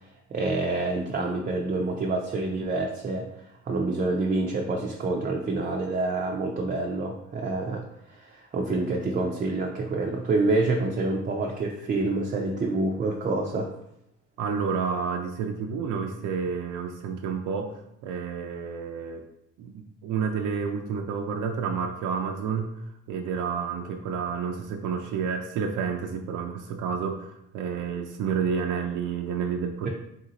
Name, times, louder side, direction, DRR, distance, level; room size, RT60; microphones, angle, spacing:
voice 1, 0.3-13.7, right 2 dB, 30° right, 1 dB, 0.4 m, -27 dB
voice 2, 14.4-19.2 19.6-22.7 23.1-29.9, right 6 dB, 90° right, 3 dB, 0.5 m, -30 dB
3.6 x 2.7 x 3.9 m, 0.78 s
cardioid pair, 140°, 29 cm